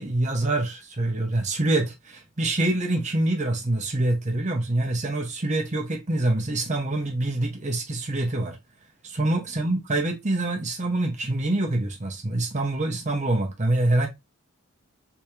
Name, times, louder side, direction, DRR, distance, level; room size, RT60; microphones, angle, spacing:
voice 1, 0.0-8.6 9.0-14.1, right 2 dB, 35° right, 0.8 m, -25 dB
3.5 x 3.0 x 3.1 m
head